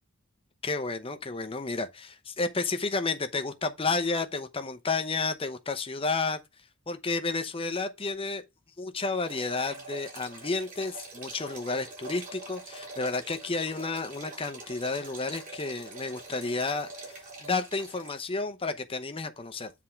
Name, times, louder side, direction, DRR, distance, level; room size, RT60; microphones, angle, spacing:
voice 1, 0.6-6.4 6.9-8.4 8.8-19.7, left 3 dB, 25° left, 0.8 m, -31 dB
sound 1, 9.2-18.2, right 2 dB, 40° right, 3.4 m, -44 dB
7.8 x 3.7 x 5.7 m
head